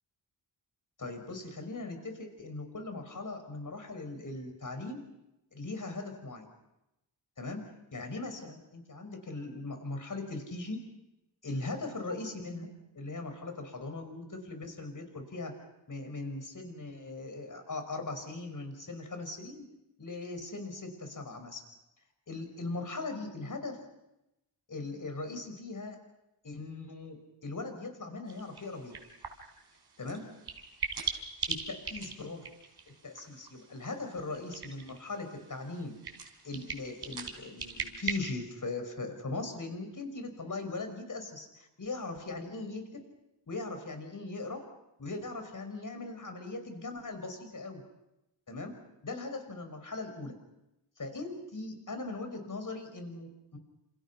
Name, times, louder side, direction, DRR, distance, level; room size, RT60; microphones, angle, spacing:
voice 1, 1.0-5.0 5.5-6.5 7.4-7.6 7.9-10.8 11.4-12.7 12.9-15.5 15.9-19.7 20.0-21.6 22.3-23.8 24.7-26.0 26.4-28.9 30.0-30.2 31.5-32.4 32.9-35.9 36.4-42.9 43.5-44.6 45.0-47.8 48.5-48.7 49.0-50.3 51.0-53.6, left 3 dB, 45° left, 6 dB, 5.4 m, -39 dB
sound 1, 28.3-38.1, right 6 dB, 65° right, 4.3 m, -41 dB
29.0 x 28.5 x 5.8 m, 0.89 s
wide cardioid pair, 95°, 43 cm